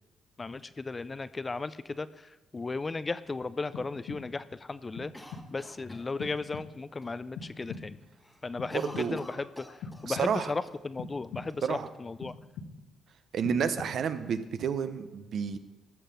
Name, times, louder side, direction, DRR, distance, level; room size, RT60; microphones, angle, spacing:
voice 1, 0.4-5.1 5.5-8.0 8.4-9.8 10.0-12.3, left 3 dB, 25° left, 15 dB, 0.4 m, -35 dB
sound 1, 3.7-4.5 5.0-5.7 6.2-7.0 7.3-8.2 8.6-9.4 9.8-10.6 11.0-11.8 12.2-13.0 13.4-14.2, left 5 dB, 85° left, 1.2 m, -44 dB
Cough, 5.1-6.6 7.0-7.1 7.4-7.8 8.1-10.4 10.7-10.8 11.5-12.3, left 1 dB, 10° left, 1.2 m, -48 dB
voice 2, 8.7-9.2 10.0-10.5 11.6-11.9 13.3-15.6, right 7 dB, 65° right, 11 dB, 0.8 m, -30 dB
13.5 x 5.9 x 6.9 m, 1.1 s
cardioid pair, 90°, 0 cm